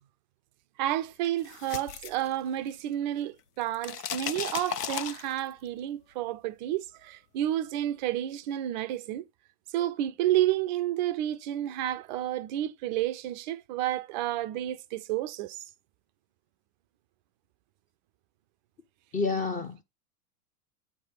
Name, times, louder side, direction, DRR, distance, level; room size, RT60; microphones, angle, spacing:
voice 1, 0.8-9.2 9.7-15.6, right 13 dB, 35° right, 0.4 m, -30 dB
sound 1, 1.2-2.9 3.2-5.7, left 8 dB, 80° left, 0.7 m, -36 dB
voice 2, 19.1-19.8, left 4 dB, 15° left, 0.6 m, -29 dB
8.6 x 3.3 x 3.8 m
figure-of-eight pair, 90°, 47 cm